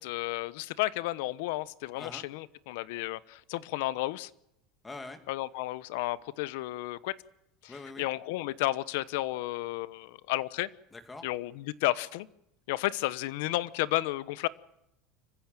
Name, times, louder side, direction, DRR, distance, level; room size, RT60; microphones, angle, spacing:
voice 1, 0.0-4.3 5.3-7.2 7.6-10.7 11.2-12.3 12.7-14.5, left 17 dB, 70° left, 18 dB, 1.0 m, -32 dB
voice 2, 4.8-5.2 7.7-8.1 10.9-11.3, left 3 dB, 10° left, 9 dB, 2.1 m, -43 dB
26.0 x 15.0 x 9.1 m, 0.80 s
cardioid pair, 160°, 0 cm